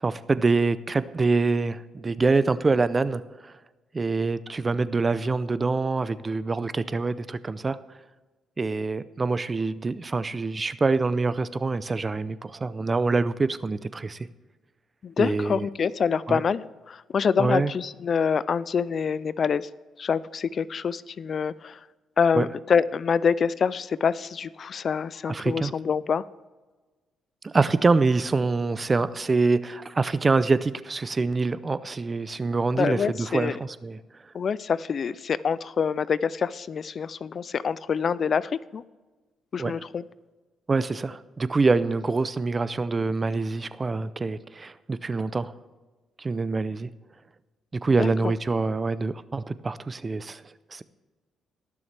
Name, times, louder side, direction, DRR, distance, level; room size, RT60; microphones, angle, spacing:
voice 1, 0.0-3.5 3.9-7.8 8.6-14.2 15.2-15.7 16.3-16.4 17.4-17.7 22.3-22.5 25.3-25.7 27.4-34.0 39.6-39.7 40.7-45.5 46.2-46.9 47.8-50.4 50.7-50.8, right 3 dB, 30° right, 0.5 m, -25 dB
voice 2, 15.0-19.7 20.0-21.8 22.2-26.2 32.8-33.5 34.3-38.8 39.5-40.0 48.0-48.3, left 6 dB, 50° left, 0.4 m, -26 dB
21.0 x 7.1 x 3.4 m
cardioid pair, 90°, 0 cm